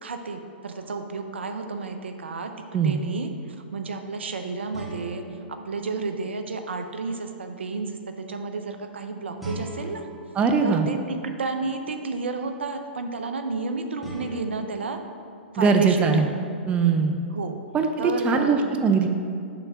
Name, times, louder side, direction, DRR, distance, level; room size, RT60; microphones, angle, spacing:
voice 1, 0.0-2.5 2.8-10.1 10.6-15.0 15.5-16.3 17.3-17.6 18.0-18.7, right 4 dB, 80° right, 6 dB, 0.6 m, -32 dB
sound 1, 0.8-1.8 4.7-6.9 9.4-11.5 14.0-16.2, right 1 dB, 5° right, 1.3 m, -41 dB
voice 2, 10.4-10.9 15.6-16.3 16.7-17.2 17.7-17.9 18.2-19.1, right 5 dB, 20° right, 5 dB, 0.5 m, -20 dB
7.0 x 3.4 x 5.9 m, 2.4 s
hypercardioid pair, 115°, 6 cm